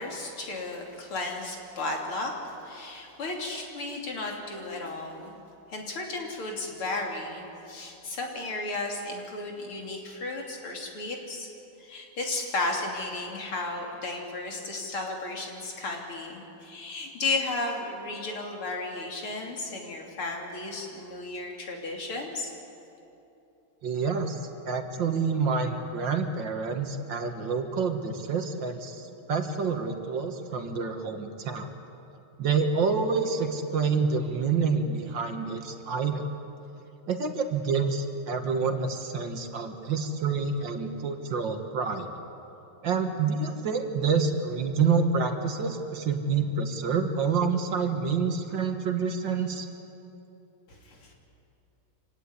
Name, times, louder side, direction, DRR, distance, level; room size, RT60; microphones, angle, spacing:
voice 1, 0.0-2.3 2.6-5.4 5.7-11.5 11.8-22.5 50.7-51.1, left 2 dB, 75° left, 1 dB, 3.9 m, -34 dB
voice 2, 23.8-24.4 24.7-31.7 32.4-36.3 37.1-42.1 42.8-49.7, right 5 dB, 60° right, 6 dB, 2.2 m, -28 dB
26.0 x 17.5 x 9.7 m, 2.8 s
omnidirectional pair, 2.4 m